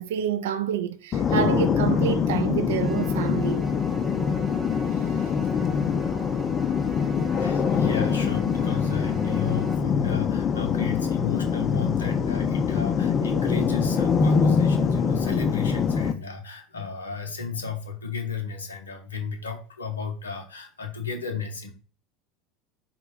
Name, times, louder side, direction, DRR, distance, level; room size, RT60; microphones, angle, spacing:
voice 1, 0.0-3.7, right 9 dB, 65° right, 0.3 m, -28 dB
sound 1, 1.1-16.1, left 6 dB, 30° left, 0.4 m, -24 dB
sound 2, 2.7-9.8, right 3 dB, 20° right, 0.7 m, -41 dB
voice 2, 4.9-5.4 7.4-21.7, left 6 dB, 75° left, 0.6 m, -33 dB
4.4 x 2.1 x 4.0 m
figure-of-eight pair, 70°, 0 cm